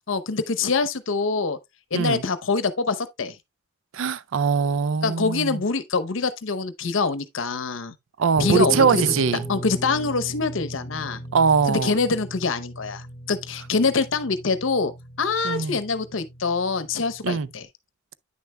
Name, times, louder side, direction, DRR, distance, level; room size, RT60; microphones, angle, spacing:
voice 1, 0.1-1.6 1.9-3.4 5.0-7.9 8.4-9.0 9.5-11.2 11.7-14.9 15.2-17.7, left 4 dB, 75° left, 0.8 m, -25 dB
voice 2, 3.9-5.6 8.2-9.4 11.3-11.9 15.4-15.8 17.2-17.5, right 5 dB, 75° right, 0.4 m, -21 dB
Guitar, 8.3-17.6, right 1 dB, 20° left, 2.1 m, -36 dB
9.3 x 6.7 x 2.2 m
head